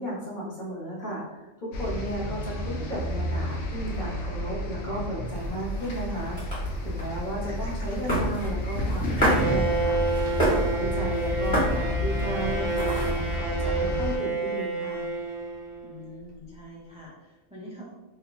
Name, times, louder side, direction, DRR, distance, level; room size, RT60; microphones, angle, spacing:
voice 1, 0.0-15.1, right 1 dB, 40° left, -6 dB, 1.1 m, -34 dB
sound 1, 1.7-14.2, left 1 dB, 70° left, 0.9 m, -30 dB
sound 2, 5.3-13.4, equal, 20° left, 1.5 m, -31 dB
Bowed string instrument, 9.2-16.1, right 3 dB, 55° right, 0.9 m, -30 dB
voice 2, 15.8-17.9, left 1 dB, 10° right, -6 dB, 0.4 m, -45 dB
2.8 x 2.3 x 3.8 m, 1.0 s
omnidirectional pair, 1.4 m